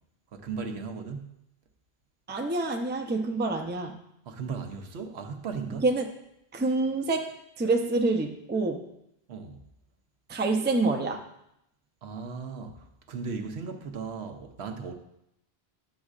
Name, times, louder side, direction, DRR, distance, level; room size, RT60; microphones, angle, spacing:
voice 1, 0.3-1.3 4.3-5.9 9.3-9.6 12.0-14.9, right 5 dB, 80° right, 5 dB, 1.0 m, -37 dB
voice 2, 2.3-3.9 5.8-6.0 6.5-8.8 10.3-11.2, right 3 dB, 15° right, 3 dB, 0.4 m, -27 dB
10.5 x 6.2 x 2.4 m, 0.80 s
omnidirectional pair, 1.1 m